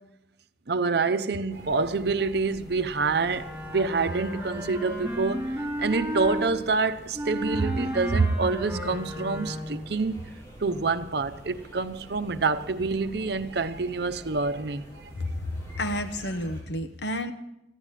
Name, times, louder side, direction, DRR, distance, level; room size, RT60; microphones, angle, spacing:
voice 1, 0.7-5.5 5.8-10.3 10.6-14.9, right 4 dB, 60° right, 0.8 m, -26 dB
sound 1, 1.5-16.6, right 1 dB, 15° left, 7.0 m, -47 dB
Wind instrument woodwind instrument, 3.2-6.5 7.1-9.9, equal, 10° right, 5.0 m, -33 dB
voice 2, 15.7-17.3, left 1 dB, 65° left, 1.1 m, -30 dB
14.5 x 10.0 x 9.0 m
head